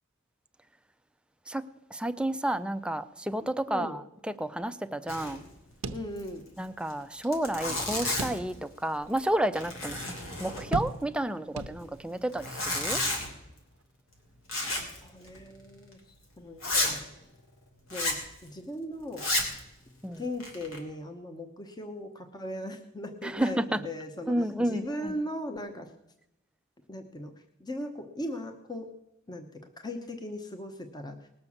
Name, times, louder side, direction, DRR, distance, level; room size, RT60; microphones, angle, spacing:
voice 1, 1.9-5.4 6.6-13.0 20.0-20.2 23.2-23.8 24.3-25.2, right 1 dB, 5° right, 0.5 m, -31 dB
voice 2, 3.7-4.0 5.9-6.5 14.9-16.0 16.4-17.0 17.9-19.2 20.2-25.9 26.9-27.3 27.6-28.9 29.3-31.3, left 1 dB, 20° left, 0.9 m, -38 dB
Zipper (clothing), 5.1-5.5 5.7-5.8 6.2-6.3 6.9-7.0 7.2-8.5 9.0-9.3 9.5-11.0 12.3-13.3 14.5-15.0 15.3-15.4 15.9-16.0 16.6-17.0 17.9-18.2 19.1-19.6 20.2-20.8, left 2 dB, 70° left, 3.1 m, -31 dB
sound 1, 5.8-6.7 7.0-7.1 8.2-8.8 9.3-9.4 10.7-11.3 11.6-12.2, right 2 dB, 75° right, 0.8 m, -37 dB
19.5 x 6.7 x 7.2 m
head